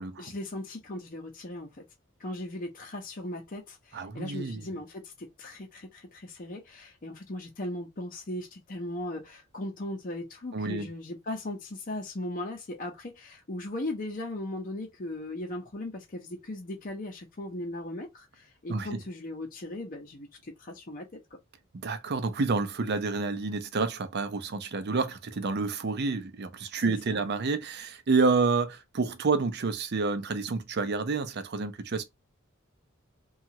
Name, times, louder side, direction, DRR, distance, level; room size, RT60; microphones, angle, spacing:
voice 1, 0.2-1.7 2.2-21.1 26.8-27.2, left 1 dB, 45° left, 0.7 m, -38 dB
voice 2, 3.9-4.6 10.5-10.9 18.7-19.0 21.8-32.0, right 4 dB, 55° right, 0.5 m, -29 dB
2.9 x 2.4 x 2.8 m
head